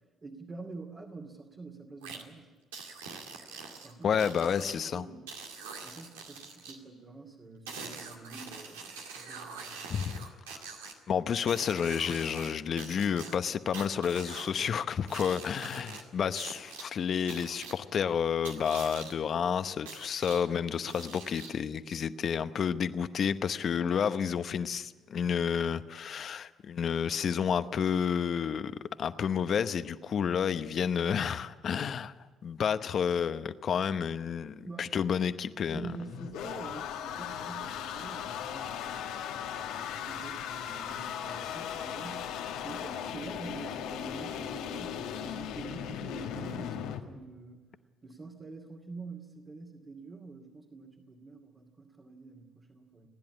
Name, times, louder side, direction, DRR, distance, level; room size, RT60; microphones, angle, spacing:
voice 1, 0.2-2.5 3.7-4.5 4.8-5.3 5.8-9.9 34.6-34.9 35.7-47.7 48.0-53.1, right 3 dB, 35° right, 1 dB, 2.5 m, -46 dB
sound 1, 2.0-2.2 2.7-4.7 5.3-6.8 7.7-10.9 11.5-12.5 12.8-14.5 15.1-16.0 16.4-16.8 17.3-17.7 18.4-19.1 19.9-20.4 20.9-21.6, right 5 dB, 85° right, 2.2 m, -44 dB
voice 2, 4.0-5.0 9.9-10.2 11.1-32.1 32.4-35.9, left 7 dB, 55° left, 12 dB, 0.9 m, -30 dB
sound 2, 35.8-47.0, left 9 dB, 75° left, 1.4 m, -38 dB
29.5 x 10.5 x 9.8 m, 1.3 s
hypercardioid pair, 55°, 0 cm